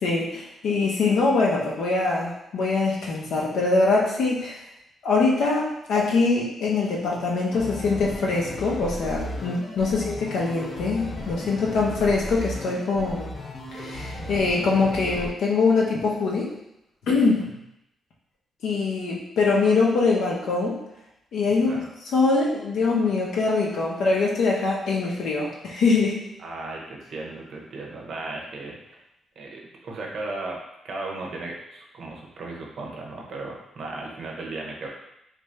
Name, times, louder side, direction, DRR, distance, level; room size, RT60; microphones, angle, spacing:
voice 1, 0.0-4.6 5.0-13.3 13.8-16.5 17.1-17.4 18.6-20.8 21.3-21.8 22.1-26.2, left 3 dB, 70° left, -3 dB, 0.8 m, -23 dB
sound 1, 7.5-15.3, left 1 dB, 25° left, 0.5 m, -35 dB
voice 2, 26.4-29.0 29.4-34.9, right 2 dB, 50° right, -1 dB, 0.6 m, -36 dB
3.2 x 2.5 x 3.2 m, 0.81 s
wide cardioid pair, 175°, 0 cm